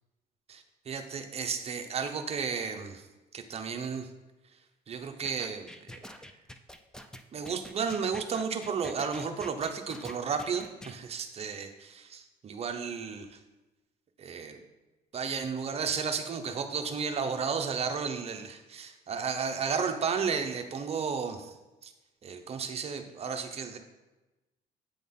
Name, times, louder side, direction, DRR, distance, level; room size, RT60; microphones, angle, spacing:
voice 1, 0.5-3.0 3.3-4.1 4.9-6.1 7.3-13.4 14.2-14.6 15.1-21.5 21.8-21.9 22.2-23.8, right 6 dB, 35° right, 6 dB, 0.7 m, -33 dB
sound 1, 5.2-10.9, left 1 dB, 5° left, 0.4 m, -46 dB
8.5 x 3.9 x 3.6 m, 1.1 s
cardioid pair, 110°, 17 cm